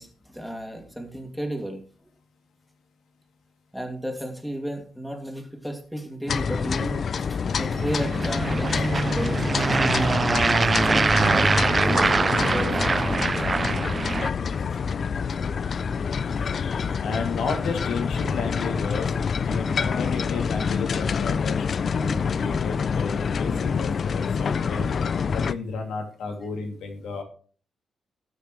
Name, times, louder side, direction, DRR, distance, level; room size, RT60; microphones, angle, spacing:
voice 1, 0.0-1.8 3.7-10.4 10.6-13.6, right 1 dB, ahead, 2 dB, 2.4 m, -33 dB
sound 1, 6.3-25.5, left 6 dB, 50° left, 0.4 m, -27 dB
sound 2, 7.7-14.3, right 3 dB, 30° right, 0.4 m, -23 dB
voice 2, 17.0-19.1 19.4-24.9 25.3-27.2, left 4 dB, 90° left, 3 dB, 2.6 m, -32 dB
19.5 x 6.7 x 3.2 m, 0.43 s
cardioid pair, 115°, 0 cm